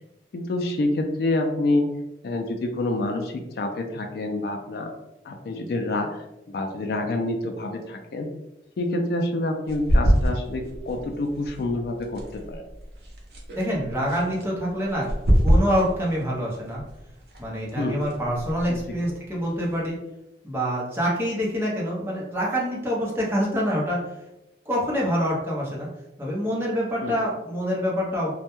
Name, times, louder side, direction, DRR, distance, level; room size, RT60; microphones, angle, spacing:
voice 1, 0.3-1.9 2.2-4.9 5.2-6.2 6.5-8.3 8.8-12.6 17.8-18.0 18.7-19.1 27.0-27.1, left 2 dB, 60° left, 4 dB, 0.3 m, -27 dB
sound 1, 9.7-20.0, equal, 60° right, 0.6 m, -27 dB
voice 2, 13.6-15.1 15.4-16.8 17.4-20.0 20.4-24.0 24.7-25.9 26.2-28.3, equal, 15° right, -5 dB, 0.6 m, -26 dB
2.2 x 2.1 x 2.9 m, 0.92 s
head